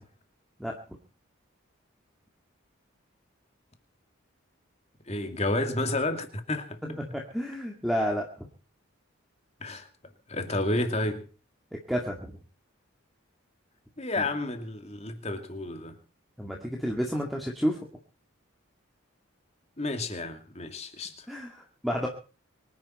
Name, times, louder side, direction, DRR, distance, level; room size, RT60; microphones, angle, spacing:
voice 1, 5.1-6.8 9.6-9.9 10.3-11.2 14.0-16.0 19.8-21.3, left 2 dB, 30° left, 2.3 m, -31 dB
voice 2, 6.8-8.5 11.9-12.3 14.2-14.3 16.4-17.8 21.3-22.1, equal, ahead, 2.3 m, -30 dB
25.0 x 10.5 x 4.4 m
head